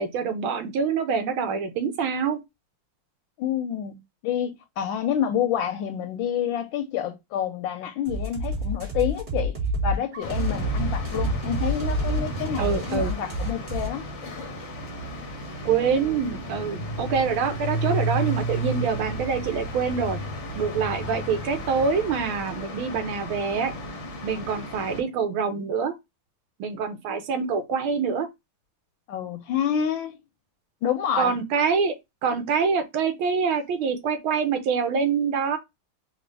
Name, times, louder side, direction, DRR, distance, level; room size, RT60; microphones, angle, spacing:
voice 1, 0.0-2.4 12.6-13.1 15.6-20.2 20.6-23.7 24.2-25.9 26.6-28.3 31.2-31.9 32.2-35.6, right 6 dB, 75° right, 1.6 m, -25 dB
voice 2, 3.4-9.6 9.8-14.1 29.1-30.2 30.8-31.4, left 9 dB, 75° left, 1.2 m, -28 dB
sound 1, 8.1-13.9, right 2 dB, 40° right, 2.0 m, -28 dB
sound 2, 10.2-25.0, right 1 dB, 50° left, 0.8 m, -33 dB
4.2 x 2.4 x 3.2 m
omnidirectional pair, 2.4 m